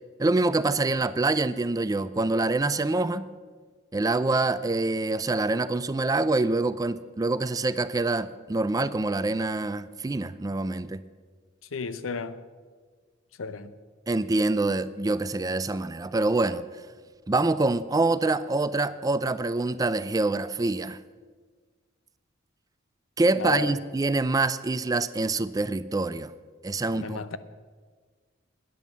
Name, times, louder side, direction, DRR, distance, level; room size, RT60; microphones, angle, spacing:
voice 1, 0.2-3.3 3.9-11.0 14.1-16.6 17.3-21.0 23.2-26.3 26.6-27.2, right 2 dB, 20° right, 0.4 m, -25 dB
voice 2, 11.7-12.4 13.4-13.7 23.4-23.8 26.9-27.4, left 4 dB, 85° left, 0.7 m, -33 dB
10.5 x 10.0 x 7.4 m
head